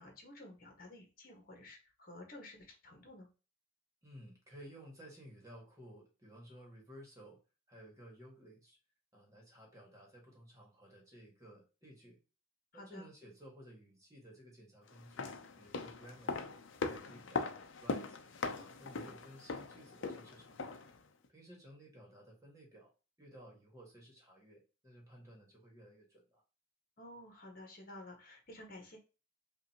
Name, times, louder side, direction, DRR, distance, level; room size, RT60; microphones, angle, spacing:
voice 1, 0.0-3.3 12.7-13.1 18.9-19.1 27.0-29.0, left 1 dB, 45° left, 2 dB, 1.4 m, -52 dB
voice 2, 4.0-7.4 7.7-8.8 9.1-12.2 12.7-16.5 16.8-18.2 18.6-20.8 21.3-22.9 23.2-26.4, equal, 15° right, -1 dB, 1.6 m, -56 dB
sound 1, 15.0-21.0 21.2-21.3, left 4 dB, 70° left, 0.5 m, -40 dB
5.1 x 2.6 x 2.8 m, 0.32 s
head